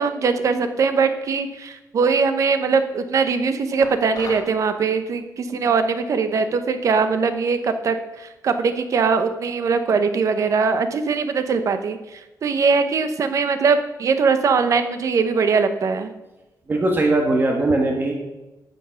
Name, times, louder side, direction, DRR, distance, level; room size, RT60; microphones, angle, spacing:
voice 1, 0.0-16.1, right 5 dB, 50° right, 9 dB, 1.0 m, -21 dB
sound 1, 3.8-4.5, left 4 dB, 60° left, 2.9 m, -36 dB
voice 2, 16.7-18.1, right 2 dB, 30° right, 2 dB, 1.4 m, -19 dB
12.5 x 7.3 x 5.7 m, 1.1 s
wide cardioid pair, 180°, 7 cm